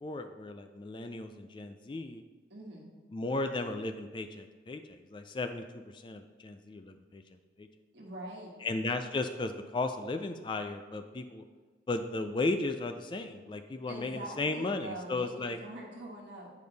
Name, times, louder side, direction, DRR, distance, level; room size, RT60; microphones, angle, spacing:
voice 1, 0.0-2.2 3.1-7.2 7.6-7.7 8.6-11.4 11.9-15.6, left 2 dB, 25° left, 7 dB, 0.3 m, -35 dB
voice 2, 2.5-2.9 7.9-8.5 13.9-16.5, right 1 dB, 70° right, -3 dB, 1.3 m, -43 dB
8.6 x 5.1 x 4.0 m, 1.4 s
head